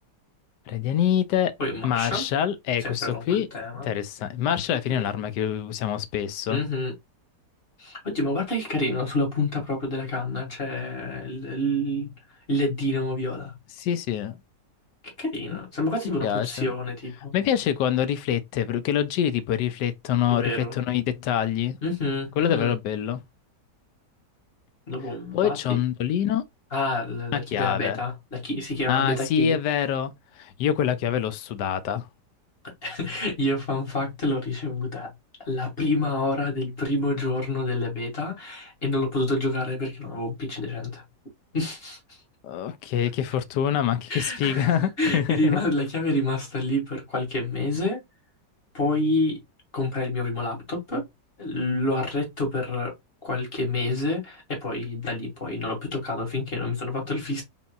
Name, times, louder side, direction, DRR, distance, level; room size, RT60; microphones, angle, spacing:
voice 1, 0.7-1.5 1.8-3.5 3.8-6.6 13.8-14.3 15.5-15.6 16.2-16.7 17.3-21.8 22.4-23.2 25.3-26.4 27.3-28.0 28.9-32.1 42.4-45.6, left 9 dB, 80° left, 1.2 m, -25 dB
voice 2, 1.6-2.3 2.8-3.9 4.9-5.1 6.5-6.9 7.8-12.1 12.5-13.5 15.2-17.3 20.3-20.8 21.8-22.8 24.9-25.8 26.7-29.6 32.8-35.1 35.4-41.0 41.5-42.2 44.1-44.7 45.0-48.0 48.7-49.4 49.7-51.0 51.4-52.9 53.2-57.4, left 2 dB, 35° left, 2.2 m, -28 dB
3.9 x 3.8 x 2.3 m
omnidirectional pair, 1.9 m